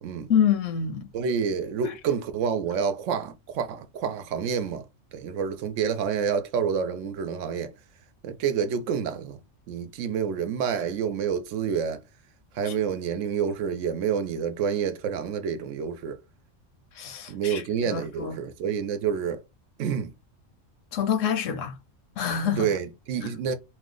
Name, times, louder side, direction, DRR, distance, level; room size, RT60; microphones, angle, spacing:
voice 1, 0.3-1.1 12.7-12.8 17.0-18.4 20.9-21.7 22.2-22.7, left 8 dB, 80° left, 1.0 m, -26 dB
voice 2, 1.1-4.9 5.1-7.7 8.2-9.4 9.7-12.0 12.6-16.2 17.3-19.4 19.8-20.1 22.6-23.5, right 7 dB, 80° right, 0.9 m, -28 dB
2.8 x 2.1 x 3.7 m
omnidirectional pair, 1.3 m